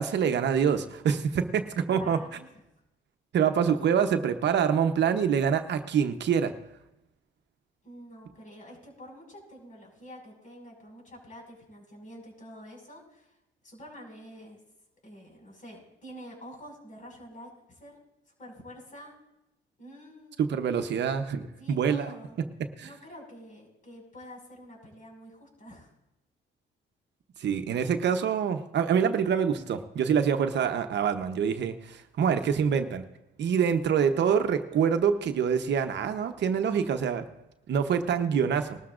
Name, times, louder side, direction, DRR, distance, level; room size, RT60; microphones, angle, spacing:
voice 1, 0.0-2.2 3.3-6.5 20.4-22.1 22.8-22.9 27.4-33.0 33.4-37.2 37.7-38.8, right 7 dB, 60° right, 7 dB, 0.9 m, -26 dB
voice 2, 1.9-2.5 7.8-13.4 13.6-14.6 15.0-18.0 18.4-19.2 19.8-20.4 21.6-22.4 22.8-25.9 32.3-32.5, equal, 40° left, 0 dB, 5.6 m, -47 dB
20.5 x 13.0 x 2.5 m, 0.90 s
cardioid pair, 90°, 20 cm